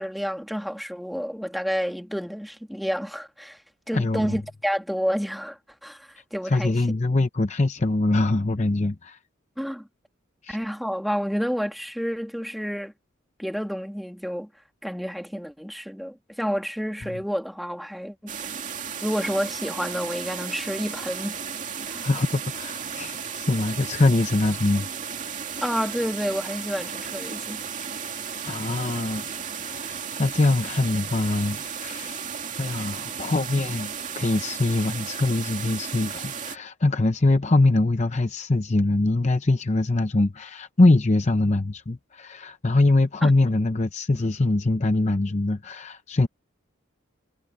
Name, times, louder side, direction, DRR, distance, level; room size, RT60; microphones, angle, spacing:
voice 1, 0.0-3.6 3.9-6.7 9.6-9.9 10.5-12.9 13.4-14.5 14.8-18.3 19.0-21.5 21.9-22.1 25.6-27.6 43.2-43.3, equal, ahead, 1.9 m, -29 dB
voice 2, 3.9-4.4 6.4-9.2 10.4-10.6 22.0-24.9 28.4-32.2 32.6-46.3, left 2 dB, 35° left, 0.7 m, -23 dB
sound 1, 18.3-36.6, right 7 dB, 35° right, 2.5 m, -34 dB
head